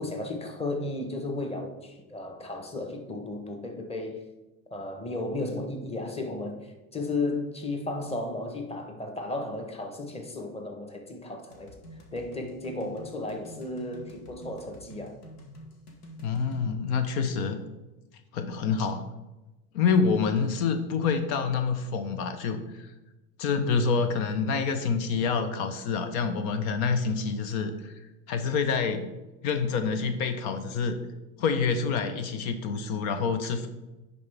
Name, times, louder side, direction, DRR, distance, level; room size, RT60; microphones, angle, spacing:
voice 1, 0.0-4.2 4.7-11.8 12.1-15.2, left 2 dB, 15° left, 4 dB, 1.1 m, -34 dB
sound 1, 11.5-16.7, equal, 90° left, 1.5 m, -48 dB
voice 2, 16.2-17.6 18.3-19.1 19.7-22.9 23.4-28.0 28.3-29.1 29.4-31.0 31.4-33.7, left 5 dB, 65° left, 9 dB, 0.8 m, -27 dB
10.0 x 4.1 x 3.4 m, 1.1 s
supercardioid pair, 100°, 44 cm